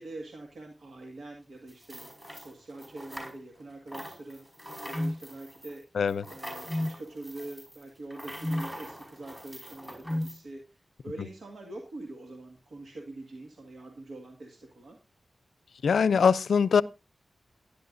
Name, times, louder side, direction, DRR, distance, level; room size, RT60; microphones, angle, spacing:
voice 1, 0.0-4.5 4.9-5.9 6.3-10.8 11.0-15.0, right 2 dB, 80° right, 1.9 m, -44 dB
sound 1, 1.7-3.6 3.9-10.4, equal, 10° right, 5.3 m, -44 dB
sound 2, 4.9-5.2 6.7-7.0 8.4-8.7 10.1-10.4, left 1 dB, 20° left, 0.5 m, -30 dB
voice 2, 15.8-16.8, left 6 dB, 85° left, 0.5 m, -22 dB
17.0 x 10.0 x 2.6 m
cardioid pair, 60°, 0 cm